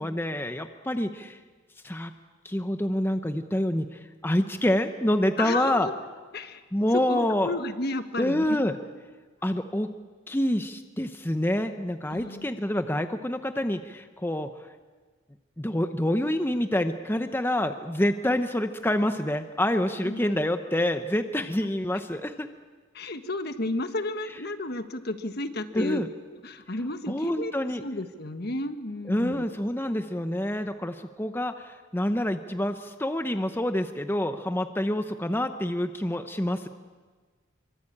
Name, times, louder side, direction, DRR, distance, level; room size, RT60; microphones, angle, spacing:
voice 1, 0.0-1.4 1.8-2.1 2.4-5.9 6.7-7.5 8.2-8.7 9.4-9.9 10.3-14.5 15.6-22.5 25.7-26.1 27.1-27.8 29.1-36.7, left 1 dB, 10° left, 8 dB, 0.8 m, -27 dB
voice 2, 5.4-5.9 6.3-6.6 6.9-8.6 12.1-12.5 20.0-20.2 22.9-26.0 26.3-27.5 27.8-29.5, left 2 dB, 50° left, 9 dB, 1.5 m, -32 dB
26.0 x 24.0 x 8.7 m, 1.4 s
head